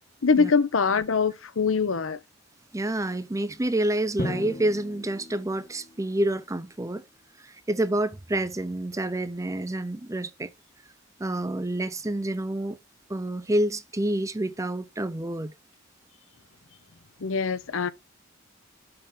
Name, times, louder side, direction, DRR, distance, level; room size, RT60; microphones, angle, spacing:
voice 1, 0.2-2.2 17.2-17.9, left 5 dB, 85° left, 0.7 m, -23 dB
voice 2, 2.7-7.0 7.4-10.5 11.2-12.8 13.1-15.5, right 1 dB, 15° right, 0.5 m, -28 dB
Drum, 4.2-6.1, left 2 dB, 40° left, 0.8 m, -36 dB
6.8 x 5.4 x 3.6 m
head